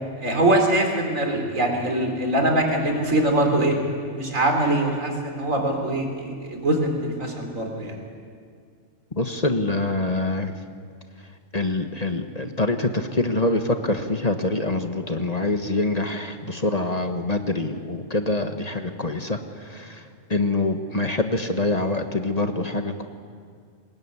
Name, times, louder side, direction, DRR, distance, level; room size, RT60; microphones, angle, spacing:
voice 1, 0.2-3.8 4.1-8.0, right 1 dB, 85° right, 2 dB, 4.4 m, -23 dB
voice 2, 9.1-10.5 11.5-23.0, left 2 dB, 30° left, 7 dB, 1.3 m, -25 dB
23.0 x 20.0 x 9.7 m, 2.2 s
omnidirectional pair, 1.3 m